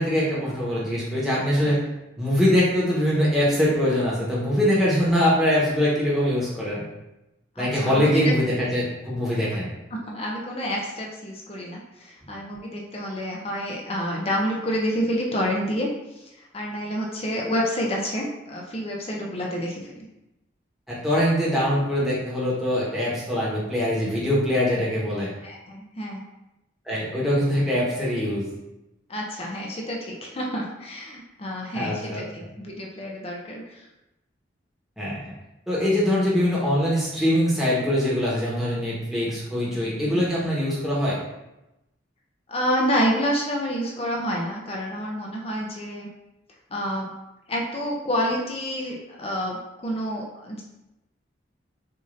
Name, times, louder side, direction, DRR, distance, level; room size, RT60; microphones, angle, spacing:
voice 1, 0.0-1.8 2.2-6.8 7.6-9.7 20.9-25.3 26.9-28.5 31.7-32.2 35.0-35.2 35.7-41.2, equal, ahead, -8 dB, 1.1 m, -23 dB
voice 2, 7.6-8.4 9.9-15.9 16.5-19.9 25.4-26.2 29.1-33.8 40.1-40.2 42.5-46.1 46.7-47.1 47.5-50.6, equal, 30° left, -1 dB, 0.5 m, -28 dB
6.3 x 2.6 x 2.6 m, 0.94 s
head